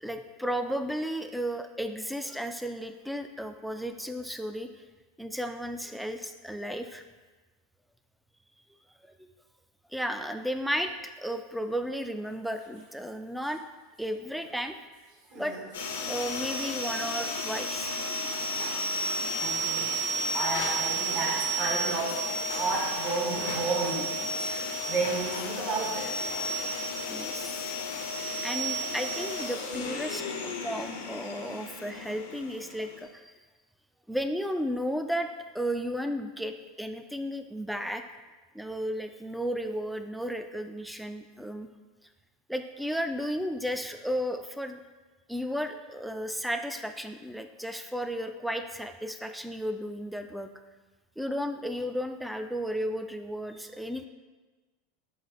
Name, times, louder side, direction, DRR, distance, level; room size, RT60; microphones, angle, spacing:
voice 1, 0.0-4.7 5.2-7.0 9.2-9.3 9.9-10.9 11.2-13.6 14.0-14.8 15.3-15.6 16.1-18.0 27.1-27.8 28.4-33.3 34.1-35.3 35.5-38.0 38.5-41.7 42.5-44.8 45.3-50.5 51.2-54.1, equal, ahead, 7 dB, 0.3 m, -34 dB
voice 2, 15.3-15.6 16.0-16.1 19.4-19.9 20.3-26.3, right 3 dB, 50° right, -2 dB, 1.3 m, -32 dB
sound 1, 15.7-33.0, equal, 85° left, 0.6 m, -32 dB
4.7 x 2.4 x 4.0 m, 1.2 s
hypercardioid pair, 110°, 0 cm